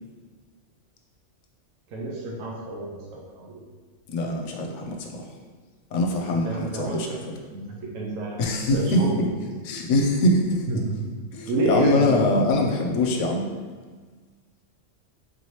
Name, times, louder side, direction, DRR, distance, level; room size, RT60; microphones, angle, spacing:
voice 1, 1.9-3.6 6.3-7.2 7.5-9.1 10.7-10.9 11.5-12.1, right 2 dB, 85° right, -3 dB, 1.1 m, -29 dB
voice 2, 4.1-5.2 5.9-7.2 8.4-9.3 9.6-10.6 11.3-13.4, left 1 dB, 70° left, 1 dB, 0.9 m, -23 dB
4.1 x 3.1 x 2.8 m, 1.4 s
omnidirectional pair, 1.4 m